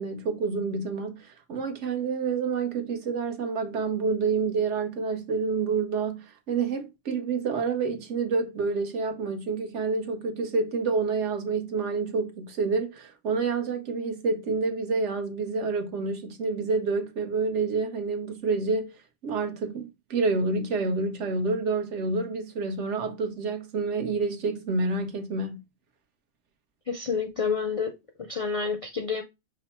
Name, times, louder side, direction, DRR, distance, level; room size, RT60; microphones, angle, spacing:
voice 1, 0.0-18.9 19.2-25.6, right 4 dB, 75° right, 1.2 m, -28 dB
voice 2, 26.9-27.9 28.2-29.2, left 5 dB, 50° left, 0.4 m, -29 dB
5.3 x 2.1 x 4.1 m
omnidirectional pair, 1.2 m